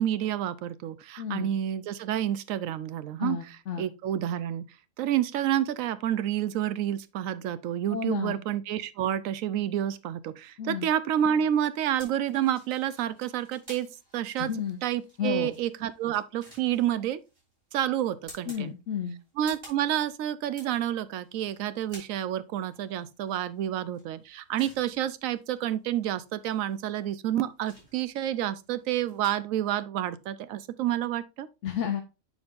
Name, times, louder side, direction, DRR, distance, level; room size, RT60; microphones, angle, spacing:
voice 1, 0.0-3.4 3.8-4.6 5.0-13.9 14.1-14.5 14.8-17.2 17.7-18.7 19.4-31.5, right 11 dB, 85° right, 1.0 m, -29 dB
voice 2, 1.2-1.5 3.2-3.9 7.9-8.4 10.6-10.9 14.4-14.8 15.2-15.5 18.5-19.2 31.6-32.0, left 8 dB, 65° left, 1.1 m, -31 dB
sound 1, 12.0-29.3, equal, 40° right, 3.4 m, -54 dB
7.2 x 6.2 x 2.5 m
omnidirectional pair, 1.4 m